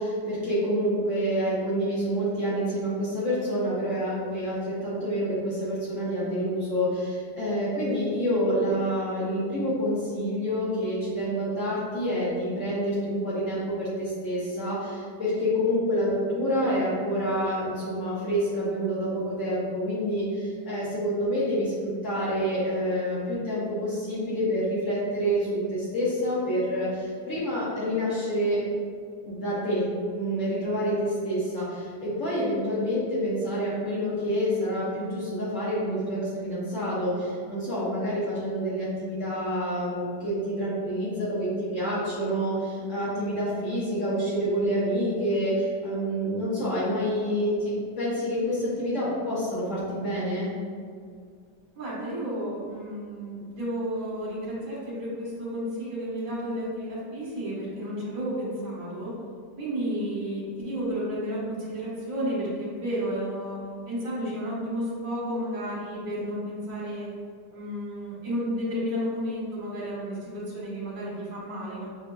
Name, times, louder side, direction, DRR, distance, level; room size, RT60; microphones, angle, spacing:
voice 1, 0.0-28.6 29.2-50.5, equal, 50° left, -9 dB, 1.1 m, -27 dB
voice 2, 51.8-59.1 59.6-63.6 63.8-67.1 67.5-71.9, equal, 55° right, -6 dB, 1.5 m, -32 dB
6.0 x 2.8 x 2.2 m, 2.1 s
omnidirectional pair, 1.8 m